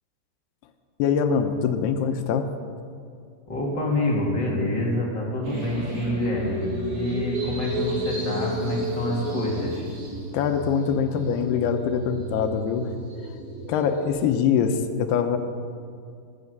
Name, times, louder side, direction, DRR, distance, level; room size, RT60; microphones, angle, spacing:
voice 1, 1.0-2.5 10.3-12.9 13.7-15.4, left 7 dB, 80° left, 7 dB, 2.9 m, -23 dB
voice 2, 3.5-9.8, left 1 dB, 30° left, -3 dB, 2.4 m, -27 dB
sound 1, 5.4-14.1, right 1 dB, 75° right, 6.0 m, -32 dB
12.5 x 12.5 x 8.0 m, 2.3 s
omnidirectional pair, 4.7 m